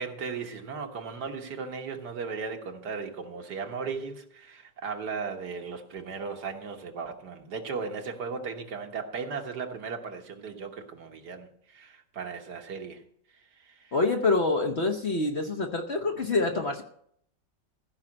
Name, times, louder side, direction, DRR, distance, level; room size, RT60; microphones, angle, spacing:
voice 1, 0.0-13.0 13.6-13.9, right 5 dB, 65° right, 1.8 m, -36 dB
voice 2, 13.9-16.8, left 3 dB, 45° left, 1.0 m, -26 dB
15.0 x 5.6 x 8.6 m
omnidirectional pair, 1.9 m